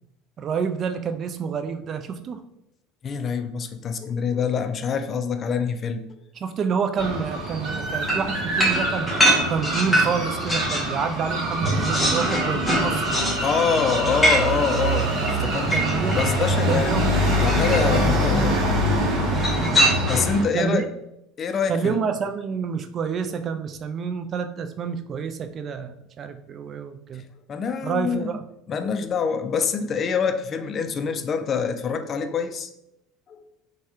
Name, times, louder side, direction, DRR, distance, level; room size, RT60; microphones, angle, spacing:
voice 1, 0.4-2.4 6.4-9.1 9.5-13.0 15.7-16.2 16.7-17.2 19.3-19.9 20.5-20.8 21.7-27.2 27.8-28.4, right 6 dB, 40° right, 8 dB, 0.3 m, -28 dB
voice 2, 3.0-6.1 12.9-13.0 13.4-15.1 15.4-15.8 16.1-16.9 17.4-18.6 20.1-20.9 21.4-22.0 27.5-28.4 28.7-32.7 33.3-33.4, left 6 dB, 40° left, 7 dB, 0.3 m, -25 dB
sound 1, 7.0-20.4, equal, 60° right, 0.7 m, -24 dB
sound 2, 8.1-11.0 11.3-16.4 17.4-18.0 19.3-20.4, equal, 5° left, 1.0 m, -24 dB
3.2 x 2.1 x 2.7 m, 0.82 s
hypercardioid pair, 75°, 0 cm